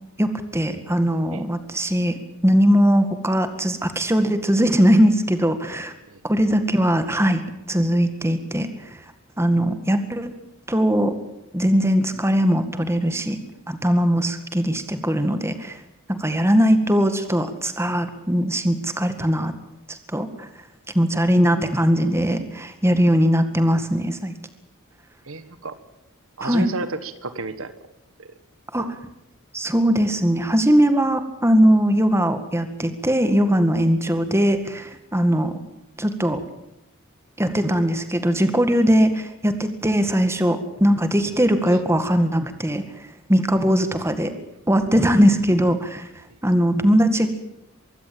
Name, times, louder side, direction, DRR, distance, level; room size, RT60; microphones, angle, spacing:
voice 1, 0.2-2.1 2.4-5.9 6.2-7.4 7.7-9.0 9.4-10.3 10.7-11.2 11.5-13.4 13.7-15.8 16.1-19.5 19.9-20.5 21.0-24.3 26.4-26.7 28.7-28.9 29.5-35.6 36.0-36.4 37.4-42.8 43.3-44.3 44.7-46.1 46.4-47.3, equal, 10° right, 9 dB, 1.9 m, -20 dB
voice 2, 25.2-25.8 26.4-27.7 28.2-28.3 28.7-28.9 46.3-46.4, right 2 dB, 70° right, 12 dB, 1.4 m, -32 dB
24.0 x 15.5 x 8.9 m, 0.87 s
head